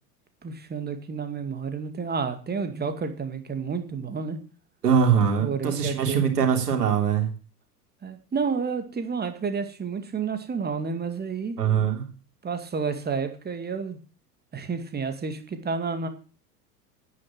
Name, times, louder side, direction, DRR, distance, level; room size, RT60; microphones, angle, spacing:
voice 1, 0.4-4.4 5.4-6.3 8.0-11.6 12.4-14.0 14.5-16.1, right 5 dB, 20° right, 7 dB, 2.2 m, -30 dB
voice 2, 4.8-7.3 11.6-12.0, right 7 dB, 75° right, 3 dB, 3.5 m, -22 dB
9.9 x 9.5 x 7.3 m, 0.37 s
figure-of-eight pair, 85°, 48 cm